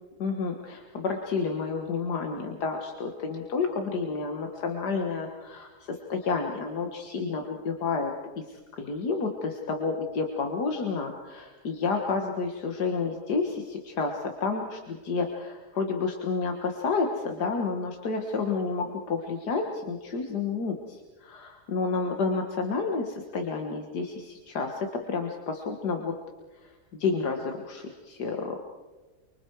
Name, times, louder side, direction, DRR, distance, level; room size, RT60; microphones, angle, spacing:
voice 1, 0.2-26.1 26.5-28.6, left 4 dB, 85° left, 3 dB, 2.1 m, -30 dB
29.0 x 24.5 x 4.8 m, 1.2 s
omnidirectional pair, 1.7 m